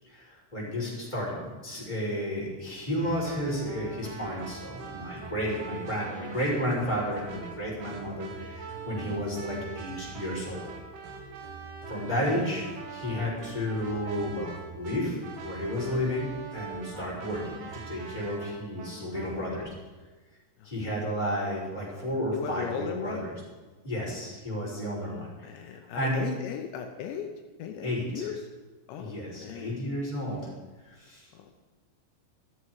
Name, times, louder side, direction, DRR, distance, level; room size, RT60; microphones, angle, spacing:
voice 1, 0.1-10.6 11.9-19.7 20.6-23.3 23.8-25.3 25.9-26.2 27.8-28.3 29.0-30.4 30.9-31.3, equal, 10° left, -6 dB, 5.4 m, -32 dB
sound 1, 3.0-19.6, right 5 dB, 65° right, 3.2 m, -43 dB
voice 2, 22.3-23.3 24.9-27.3 27.6-28.4 28.9-29.8 31.3-31.5, left 8 dB, 80° left, 4 dB, 3.1 m, -37 dB
14.5 x 13.5 x 4.8 m, 1.3 s
omnidirectional pair, 5.2 m